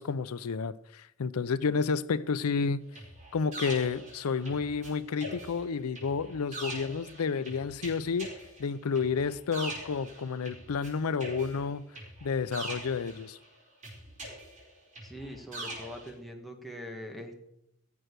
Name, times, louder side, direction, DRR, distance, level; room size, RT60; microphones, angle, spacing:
voice 1, 0.0-2.8 3.3-8.3 8.6-11.9 12.2-13.4, left 5 dB, 85° left, 0.5 m, -30 dB
sound 1, 2.9-4.9 5.2-10.9 11.2-13.4 13.8-16.1, right 1 dB, 35° right, 4.9 m, -42 dB
voice 2, 15.0-17.5, equal, ahead, 1.5 m, -43 dB
15.5 x 7.8 x 6.7 m
head